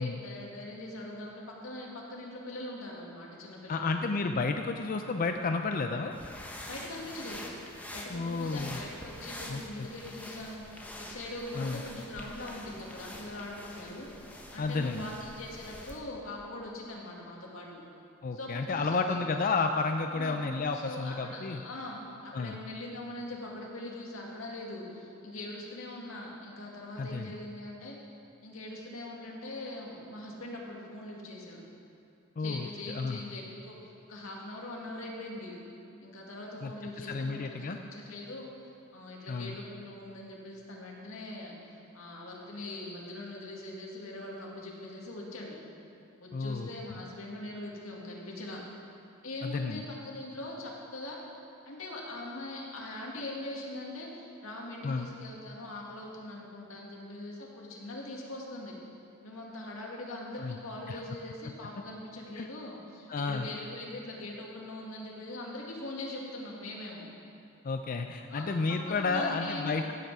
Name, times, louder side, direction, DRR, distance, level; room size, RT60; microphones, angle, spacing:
voice 1, 0.0-3.9 6.7-7.5 7.9-14.1 14.5-17.8 18.3-19.2 20.1-20.4 20.7-28.0 28.4-31.6 32.4-35.5 36.0-38.5 38.9-45.6 46.2-48.6 49.2-51.2 51.7-58.7 59.2-67.1 68.3-69.8, left 1 dB, 90° left, -2 dB, 2.1 m, -42 dB
voice 2, 3.7-6.2 8.1-8.8 9.5-9.9 11.5-11.8 14.6-15.1 18.2-21.6 22.3-22.6 27.0-27.3 32.4-33.2 36.6-37.8 39.3-39.6 46.3-47.0 49.4-49.8 54.8-55.1 60.4-60.6 60.9-61.0 61.4-61.5 62.4-62.5 63.1-63.5 67.6-69.9, left 4 dB, 45° left, 5 dB, 0.4 m, -32 dB
sound 1, 6.1-16.0, left 1 dB, 10° left, 1.1 m, -45 dB
16.0 x 8.0 x 4.8 m, 2.6 s
head